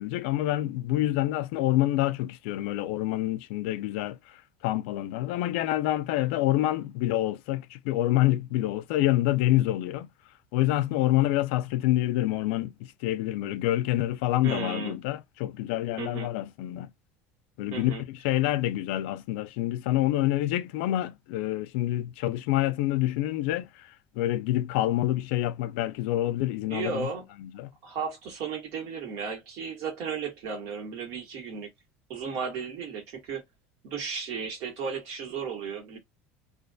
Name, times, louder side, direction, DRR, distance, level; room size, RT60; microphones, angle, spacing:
voice 1, 0.0-10.1 10.5-16.9 17.6-27.1 27.4-27.7, left 15 dB, 75° left, 0.4 m, -27 dB
voice 2, 14.4-15.0 16.0-16.3 17.7-18.0 26.7-27.3 27.8-31.7 32.1-33.4 33.8-36.0, right 6 dB, 60° right, 1.2 m, -34 dB
2.4 x 2.3 x 2.6 m
cardioid pair, 150°, 6 cm